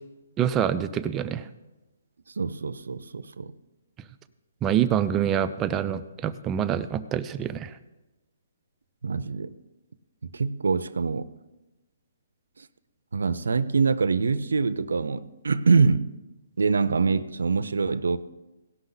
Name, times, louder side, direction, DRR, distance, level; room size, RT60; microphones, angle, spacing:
voice 1, 0.4-1.5 4.6-7.7, right 9 dB, 15° right, 0.4 m, -26 dB
voice 2, 2.4-3.5 9.0-9.5 10.2-11.3 12.6-12.7 13.1-16.1 16.6-18.2, right 4 dB, 90° right, 0.6 m, -24 dB
18.0 x 6.0 x 4.0 m
hypercardioid pair, 165°, 0 cm